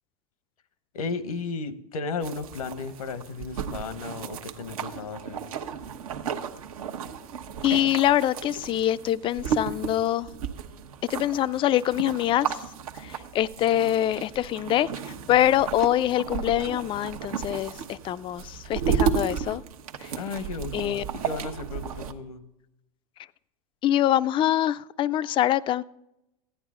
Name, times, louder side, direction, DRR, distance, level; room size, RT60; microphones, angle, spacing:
voice 1, 0.9-5.4 15.3-15.6 20.1-22.4, left 4 dB, 80° left, 13 dB, 1.0 m, -34 dB
sound 1, 2.2-22.1, right 7 dB, 75° right, 1.0 m, -33 dB
voice 2, 7.6-10.3 11.1-12.6 13.0-19.6 20.0-20.1 20.7-21.0 23.8-25.8, left 12 dB, 30° left, 16 dB, 0.4 m, -24 dB
15.0 x 10.0 x 3.7 m, 0.86 s
hypercardioid pair, 105°, 18 cm